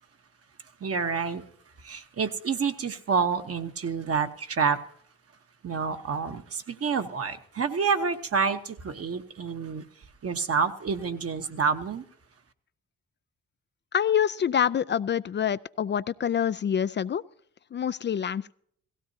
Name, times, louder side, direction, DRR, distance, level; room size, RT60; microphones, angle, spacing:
voice 1, 0.8-1.4 1.8-4.8 5.6-9.8 10.2-12.0, right 5 dB, 50° right, 6 dB, 1.1 m, -28 dB
voice 2, 13.9-17.2 17.7-18.5, left 8 dB, 35° left, 16 dB, 0.4 m, -26 dB
17.0 x 15.5 x 2.8 m, 0.65 s
supercardioid pair, 50°, 31 cm